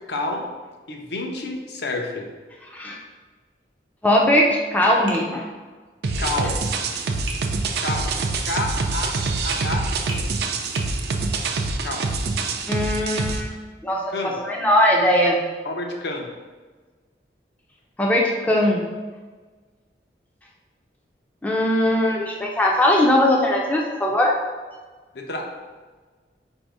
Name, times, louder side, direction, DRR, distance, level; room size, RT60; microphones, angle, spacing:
voice 1, 0.1-0.5 0.9-2.3 6.2-6.5 7.8-8.1 8.4-9.1 9.4-10.4 11.8-12.1 14.1-14.4 15.6-16.3 25.1-25.4, left 2 dB, 70° left, 1 dB, 0.7 m, -29 dB
voice 2, 2.7-3.0 4.0-5.4 12.7-13.6 13.8-15.4 18.0-18.8 21.4-24.3, left 1 dB, 10° left, -1 dB, 0.4 m, -20 dB
Tap, 5.1-5.3 7.3-7.5 9.5-9.7 10.1-10.3 10.8-10.9, right 3 dB, 90° right, 0.8 m, -34 dB
sound 1, 6.0-13.4, right 3 dB, 65° right, 0.4 m, -25 dB
4.2 x 2.6 x 4.7 m, 1.4 s
head